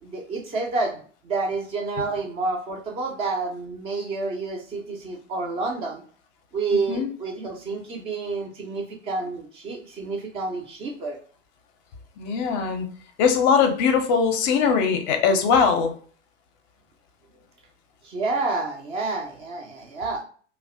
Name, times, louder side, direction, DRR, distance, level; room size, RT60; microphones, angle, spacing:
voice 1, 0.0-1.0 1.2-6.0 6.5-11.2 18.0-20.2, right 3 dB, 15° right, 2 dB, 0.3 m, -29 dB
voice 2, 12.2-12.9 13.2-15.9, left 6 dB, 40° left, 5 dB, 0.5 m, -21 dB
2.6 x 2.1 x 2.4 m, 0.44 s
figure-of-eight pair, 90°, 37 cm